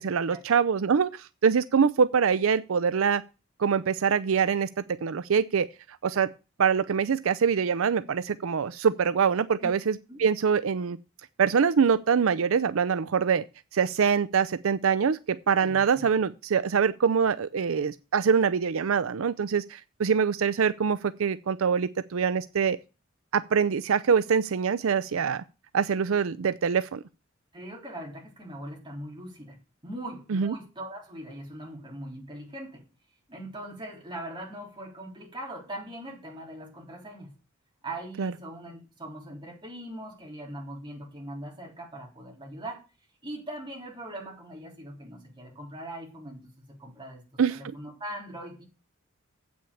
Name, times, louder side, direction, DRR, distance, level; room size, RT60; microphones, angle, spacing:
voice 1, 0.0-3.2 3.6-5.7 6.0-6.3 6.6-11.0 11.4-13.4 13.7-22.8 23.3-25.4 25.7-27.0 30.3-30.5 38.2-38.3 47.4-47.6, right 6 dB, 80° right, 0.5 m, -24 dB
voice 2, 15.5-16.1 27.5-29.6 29.8-32.9 33.3-37.3 37.8-42.8 43.2-48.6, right 1 dB, 20° right, 3.7 m, -41 dB
8.3 x 6.1 x 7.1 m
head